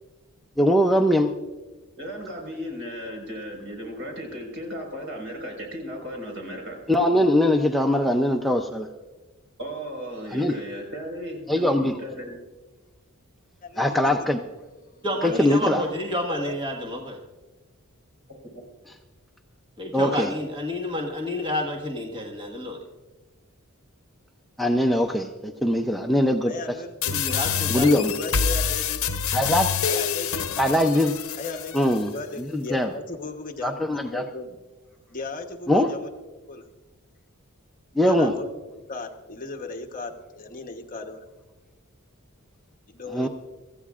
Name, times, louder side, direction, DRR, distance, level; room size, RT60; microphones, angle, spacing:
voice 1, 0.6-1.3 6.9-8.9 10.3-10.6 11.5-12.0 13.8-14.4 15.2-15.8 19.9-20.3 24.6-26.5 27.7-28.1 29.3-29.7 30.6-31.1 31.7-32.1 32.4-32.9 33.6-34.2 35.7-35.9 38.0-38.3 43.1-43.3, left 1 dB, ahead, 2 dB, 0.5 m, -21 dB
voice 2, 2.0-6.8 9.6-11.7 12.0-12.3 15.6-15.8, equal, 60° right, 1 dB, 4.7 m, -35 dB
voice 3, 13.6-14.2 14.9-15.5 16.3-16.5 26.4-27.4 28.0-29.1 29.9-30.5 31.4-34.6 35.1-36.1 36.5-36.7 38.0-38.5 38.9-41.3 42.9-43.3, left 3 dB, 40° left, 4 dB, 1.1 m, -36 dB
voice 4, 15.0-17.2 19.8-22.8 27.1-28.2, left 1 dB, 20° right, 0 dB, 1.6 m, -30 dB
sound 1, 27.0-32.0, left 6 dB, 65° left, 0.8 m, -26 dB
25.0 x 14.5 x 2.5 m, 1.2 s
head